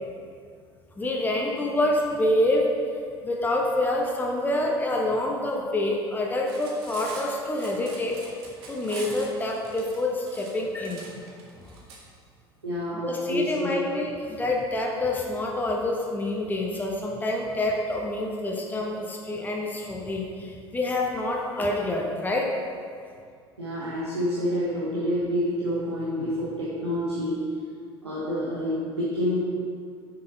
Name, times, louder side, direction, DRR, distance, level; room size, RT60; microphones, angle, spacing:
voice 1, 1.0-2.7 3.2-8.2 8.7-11.0 13.0-22.5, left 1 dB, 15° left, -1 dB, 1.0 m, -27 dB
Cutlery silverware, 6.3-12.0, right 3 dB, 60° right, 1.5 m, -43 dB
voice 2, 12.6-13.8 23.6-27.4 28.0-29.4, equal, 85° right, -6 dB, 1.1 m, -28 dB
7.3 x 5.9 x 3.9 m, 2.2 s
figure-of-eight pair, 70°, 14 cm